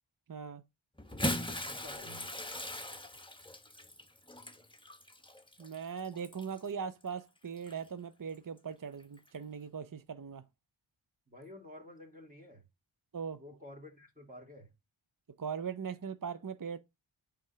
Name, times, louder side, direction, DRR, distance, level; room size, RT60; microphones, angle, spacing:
voice 1, 0.3-0.6 5.6-10.4 13.1-13.4 15.4-16.8, right 6 dB, 40° right, 0.6 m, -40 dB
Bathtub (filling or washing) / Splash splatter, 1.0-6.7 7.6-7.7 9.2-9.3, left 1 dB, 10° left, 1.1 m, -39 dB
voice 2, 1.6-2.3 11.3-12.6 13.4-14.7, left 1 dB, 15° right, 2.5 m, -51 dB
8.6 x 3.8 x 5.7 m
wide cardioid pair, 60°, 49 cm